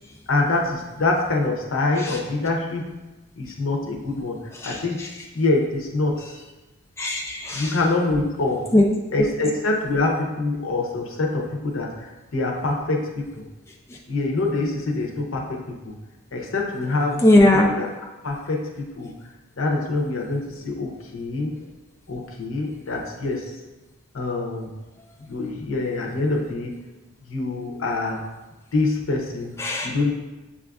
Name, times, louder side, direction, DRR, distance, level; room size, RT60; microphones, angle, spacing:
voice 1, 0.3-3.0 3.4-5.0 5.3-6.4 7.5-8.7 9.1-13.4 14.1-15.9 16.3-17.2 17.7-17.9 18.2-19.1 19.6-21.5 22.1-23.6 24.1-24.7 25.3-26.8 27.2-28.2 28.7-30.1, left 2 dB, 80° left, 1 dB, 0.7 m, -25 dB
voice 2, 4.6-5.1 7.0-7.8 8.7-8.9 9.2-9.3 17.2-17.8 29.6-29.9, left 1 dB, 15° left, -1 dB, 0.3 m, -19 dB
6.9 x 2.4 x 2.3 m, 1.1 s
head